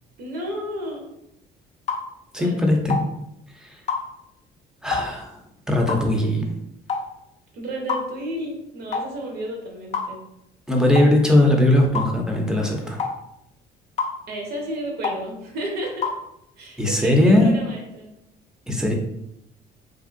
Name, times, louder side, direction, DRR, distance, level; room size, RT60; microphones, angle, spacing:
voice 1, 0.2-1.1 2.4-2.6 7.5-10.2 14.3-16.1 16.6-18.1, right 1 dB, 70° right, 1 dB, 0.9 m, -32 dB
sound 1, 1.9-2.1 2.9-3.1 3.9-4.1 4.9-5.1 5.9-6.1 6.9-7.1 7.9-8.1 8.9-9.1 9.9-10.1 10.9-11.1 11.9-12.1 13.0-13.2 14.0-14.2 15.0-15.2 16.0-16.2, left 5 dB, 40° left, 0.4 m, -26 dB
voice 2, 2.3-3.0 4.8-5.3 5.7-6.4 10.7-13.0 16.8-17.5 18.7-18.9, left 1 dB, 5° right, 1 dB, 0.6 m, -19 dB
2.9 x 2.7 x 2.5 m, 0.80 s
cardioid pair, 110°, 17 cm